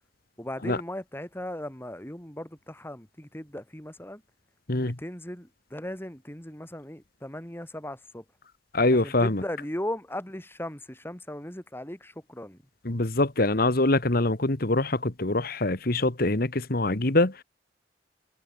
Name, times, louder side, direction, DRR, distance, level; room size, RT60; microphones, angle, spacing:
voice 1, 0.4-4.2 4.8-8.2 8.9-12.6, left 1 dB, 15° left, 4.8 m, -37 dB
voice 2, 8.7-9.4 12.9-17.3, left 2 dB, 55° left, 1.8 m, -24 dB
head